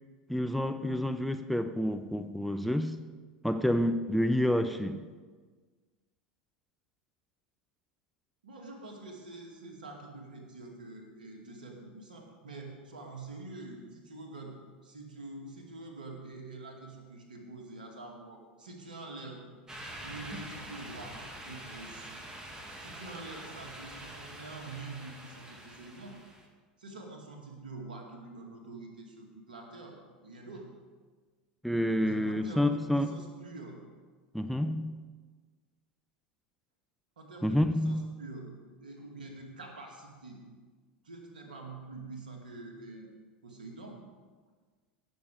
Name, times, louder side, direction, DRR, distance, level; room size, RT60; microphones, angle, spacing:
voice 1, 0.3-3.0 3.4-5.0 31.6-33.2 34.3-35.0 37.4-38.0, left 1 dB, ahead, 10 dB, 0.5 m, -29 dB
voice 2, 8.4-14.6 14.8-19.4 20.0-22.1 22.8-26.2 26.8-30.0 30.2-30.7 32.0-33.8 37.2-40.4 41.0-43.1 43.4-44.0, right 3 dB, 70° right, 1 dB, 2.3 m, -46 dB
sound 1, 19.7-26.5, right 1 dB, 15° right, 2.0 m, -45 dB
17.0 x 7.1 x 4.9 m, 1.4 s
figure-of-eight pair, 80°, 5 cm